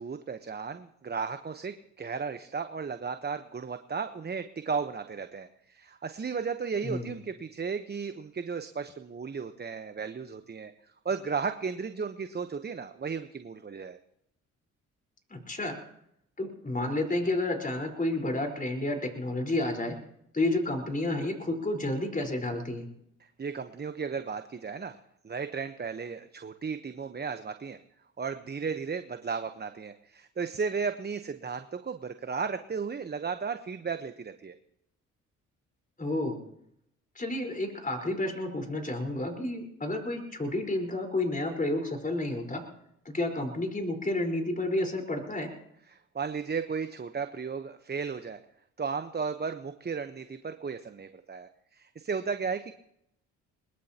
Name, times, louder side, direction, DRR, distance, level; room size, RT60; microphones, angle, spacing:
voice 1, 0.0-10.7 11.0-14.0 23.2-25.0 25.2-27.8 28.2-34.5 45.9-48.4 48.8-52.7, right 5 dB, 30° right, 9 dB, 1.0 m, -35 dB
voice 2, 6.8-7.1 15.3-15.8 16.4-20.0 20.3-22.9 36.0-36.4 37.1-42.6 43.0-45.5, left 2 dB, 25° left, 3 dB, 4.6 m, -30 dB
21.5 x 21.5 x 3.0 m, 0.76 s
supercardioid pair, 55°, 34 cm